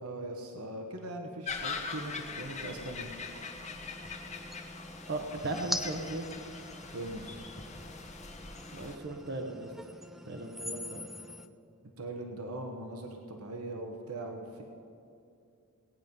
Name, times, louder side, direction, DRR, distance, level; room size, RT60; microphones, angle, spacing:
voice 1, 0.0-3.1 6.9-7.4 11.8-14.6, right 1 dB, 70° right, 3 dB, 1.1 m, -40 dB
sound 1, 1.5-9.0, left 4 dB, 30° left, 1.0 m, -42 dB
sound 2, 2.0-11.5, equal, ahead, 0.4 m, -44 dB
voice 2, 5.1-6.3 8.7-9.7 10.3-11.1, right 2 dB, 50° right, 4 dB, 1.0 m, -37 dB
18.5 x 9.2 x 5.4 m, 2.6 s
head